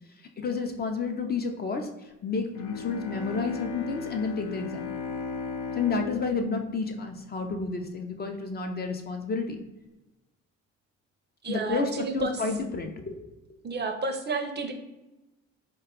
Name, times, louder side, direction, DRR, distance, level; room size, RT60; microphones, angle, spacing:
voice 1, 0.4-1.9 2.2-4.8 5.8-9.6 11.5-13.2, left 4 dB, 35° left, 4 dB, 0.4 m, -30 dB
Bowed string instrument, 2.5-7.8, left 5 dB, 80° left, 0.5 m, -37 dB
voice 2, 11.4-12.5 13.6-14.7, right 3 dB, 35° right, 5 dB, 0.5 m, -31 dB
3.7 x 2.2 x 3.5 m, 0.99 s
cardioid pair, 90°, 30 cm